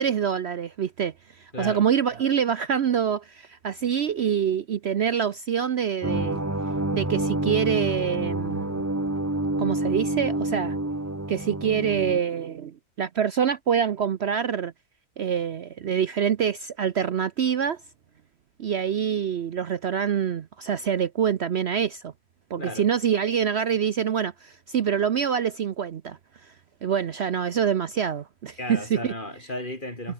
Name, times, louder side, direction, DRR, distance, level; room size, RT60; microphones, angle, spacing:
voice 1, 0.0-6.4 6.9-8.8 9.6-10.8 11.3-14.7 15.2-17.8 18.6-22.1 22.5-26.5 26.8-29.1, right 8 dB, 80° right, 0.5 m, -26 dB
voice 2, 1.5-1.8 22.6-22.9 28.6-30.1, left 1 dB, 25° left, 5.8 m, -34 dB
sound 1, 6.0-12.2, right 1 dB, 10° right, 1.1 m, -28 dB
omnidirectional pair, 2.2 m